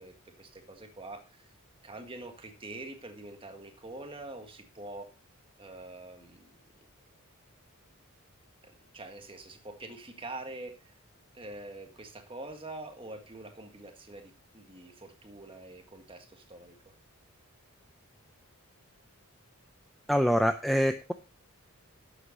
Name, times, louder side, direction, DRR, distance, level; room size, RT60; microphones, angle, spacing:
voice 1, 0.0-1.5 1.8-5.1 5.6-6.9 8.6-11.0 11.3-16.9, right 2 dB, 25° right, 5 dB, 1.7 m, -45 dB
voice 2, 20.1-21.1, equal, ahead, 7 dB, 0.5 m, -25 dB
11.5 x 8.0 x 4.0 m, 0.30 s
head